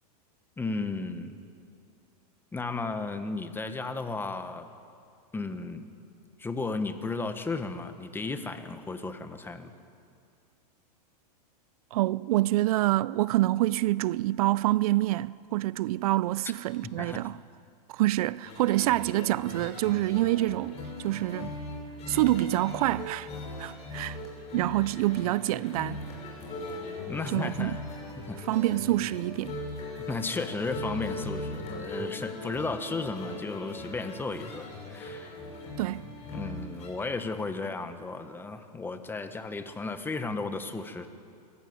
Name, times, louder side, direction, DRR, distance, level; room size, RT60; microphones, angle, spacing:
voice 1, 0.6-1.4 2.5-4.7 5.3-5.9 6.4-9.7 17.0-17.3 27.1-27.8 28.2-28.5 30.1-35.3 36.3-41.1, left 3 dB, 10° left, 1.3 m, -34 dB
voice 2, 11.9-17.4 17.9-21.6 22.1-23.3 23.6-24.2 24.5-26.0 27.3-27.8 28.5-29.5 35.8-36.1, right 16 dB, 65° right, 0.4 m, -26 dB
sound 1, 18.5-36.9, left 2 dB, 30° left, 6.1 m, -39 dB
22.0 x 14.0 x 9.5 m
hypercardioid pair, 130°, 20 cm